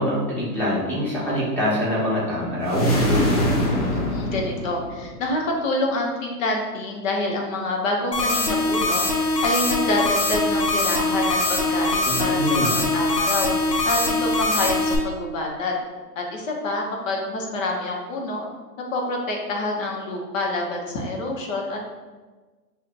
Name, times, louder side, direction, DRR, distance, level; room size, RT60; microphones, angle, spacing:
voice 1, 0.0-2.9 12.0-12.7, equal, 5° left, -9 dB, 1.0 m, -24 dB
sound 1, 2.6-5.2, equal, 30° left, 0.3 m, -22 dB
voice 2, 3.9-15.8 16.1-18.5 18.9-21.8, left 2 dB, 55° left, 1 dB, 1.1 m, -27 dB
sound 2, 8.1-15.0, left 2 dB, 80° left, 1.1 m, -22 dB
6.0 x 2.8 x 2.5 m, 1.3 s
hypercardioid pair, 130°, 48 cm